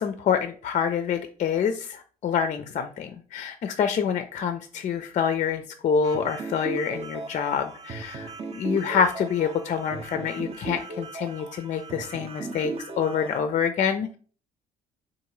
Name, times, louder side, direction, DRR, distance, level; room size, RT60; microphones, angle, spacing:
voice 1, 0.0-14.2, left 7 dB, 40° left, 8 dB, 0.4 m, -27 dB
sound 1, 6.0-13.4, right 3 dB, 30° right, 0.6 m, -37 dB
3.6 x 2.5 x 3.0 m, 0.41 s
hypercardioid pair, 55°, 20 cm